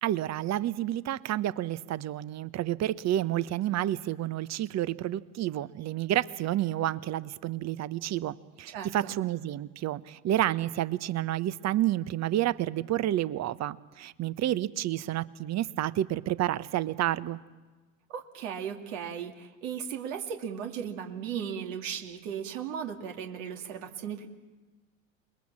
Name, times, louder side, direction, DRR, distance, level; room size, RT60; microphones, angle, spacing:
voice 1, 0.0-17.4, right 13 dB, 40° right, 17 dB, 1.0 m, -30 dB
voice 2, 8.7-9.2 18.1-24.3, right 8 dB, 70° right, 3 dB, 2.5 m, -36 dB
28.0 x 21.5 x 7.4 m, 1.3 s
hypercardioid pair, 70°, 40 cm